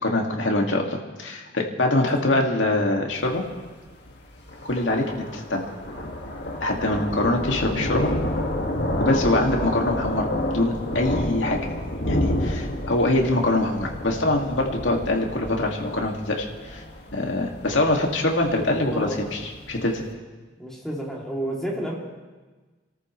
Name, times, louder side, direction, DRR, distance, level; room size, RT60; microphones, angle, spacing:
voice 1, 0.0-3.4 4.6-5.6 6.6-8.1 9.0-11.6 12.1-16.8 17.1-19.4 19.7-20.0, left 2 dB, 90° left, 1 dB, 2.3 m, -24 dB
voice 2, 1.9-2.4 18.8-19.3 20.6-22.0, right 1 dB, 5° left, -4 dB, 2.9 m, -31 dB
Thunder, 3.1-20.0, left 1 dB, 65° left, 2.0 m, -29 dB
29.5 x 14.0 x 3.3 m, 1.3 s
head